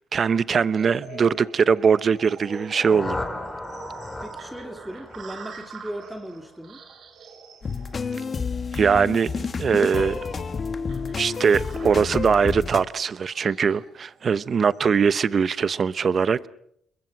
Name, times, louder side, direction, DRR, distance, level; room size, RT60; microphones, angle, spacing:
voice 1, 0.1-3.2 8.7-10.2 11.2-16.5, right 6 dB, 45° right, 0.9 m, -21 dB
sound 1, 0.7-15.0, right 5 dB, 60° right, 3.8 m, -45 dB
sound 2, 2.4-6.3, left 2 dB, 15° left, 4.4 m, -35 dB
voice 2, 4.2-6.8, right 1 dB, 5° right, 2.2 m, -37 dB
sound 3, 7.6-12.8, left 5 dB, 40° left, 1.5 m, -30 dB
29.5 x 22.0 x 5.9 m
cardioid pair, 90°, 0 cm